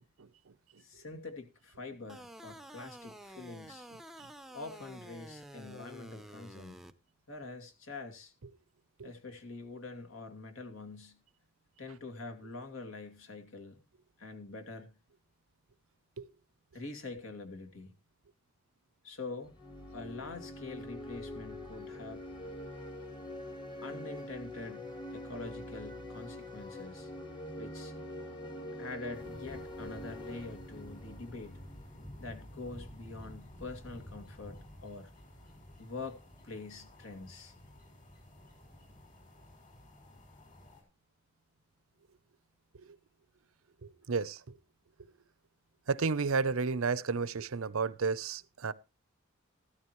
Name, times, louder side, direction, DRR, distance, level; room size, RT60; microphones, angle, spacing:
voice 1, 0.2-0.8 4.2-4.3 9.0-9.1 16.2-16.3 42.7-43.0 43.8-44.6 45.9-48.7, right 5 dB, 80° right, 0.7 m, -33 dB
voice 2, 0.8-3.9 4.5-6.8 7.3-8.3 9.0-11.2 11.8-13.8 14.2-14.9 16.7-17.9 19.0-19.6 19.9-22.3 23.8-27.1 27.6-27.9 28.8-31.6 32.2-35.1 35.8-37.5, left 3 dB, 70° left, 2.4 m, -45 dB
sound 1, 2.1-6.9, right 1 dB, ahead, 0.7 m, -50 dB
sound 2, 19.4-32.1, left 1 dB, 20° left, 1.5 m, -44 dB
sound 3, 29.1-40.8, left 1 dB, 40° left, 5.7 m, -52 dB
14.5 x 13.0 x 3.1 m
head